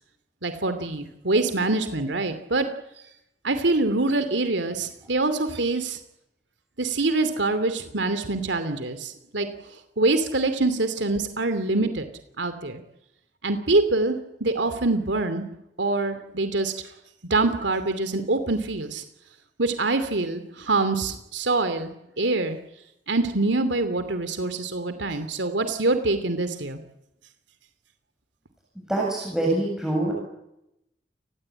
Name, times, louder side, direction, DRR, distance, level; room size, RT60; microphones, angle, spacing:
voice 1, 0.4-2.7 3.4-6.0 6.8-9.5 10.0-12.0 12.4-12.8 13.4-15.5 15.8-16.7 17.3-19.0 19.6-22.6 23.1-26.8, right 2 dB, 85° right, 10 dB, 2.7 m, -25 dB
voice 2, 28.9-30.1, right 1 dB, 5° right, -3 dB, 7.7 m, -25 dB
29.5 x 20.5 x 8.9 m, 0.84 s
head